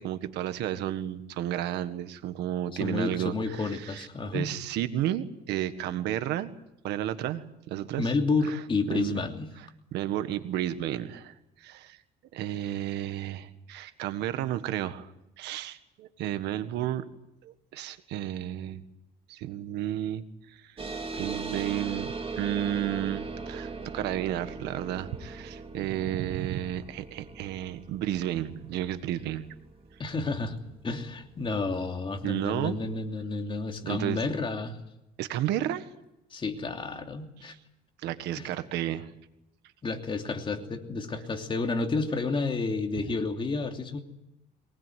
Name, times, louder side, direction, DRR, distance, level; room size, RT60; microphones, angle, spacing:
voice 1, 0.0-6.5 6.8-8.1 8.9-9.2 9.9-12.0 12.3-15.1 15.4-17.1 17.4-18.8 19.3-20.7 21.1-29.4 32.2-32.8 33.8-34.2 35.2-35.8 38.0-39.1, right 12 dB, 85° right, 10 dB, 1.7 m, -32 dB
voice 2, 2.8-4.5 8.0-9.5 30.0-30.6 30.8-34.8 36.3-37.5 38.3-38.5 39.8-44.0, left 3 dB, 30° left, 4 dB, 2.9 m, -30 dB
sound 1, 20.8-31.7, right 4 dB, 35° right, 2.8 m, -39 dB
23.0 x 19.5 x 9.4 m, 0.89 s
cardioid pair, 110°, 17 cm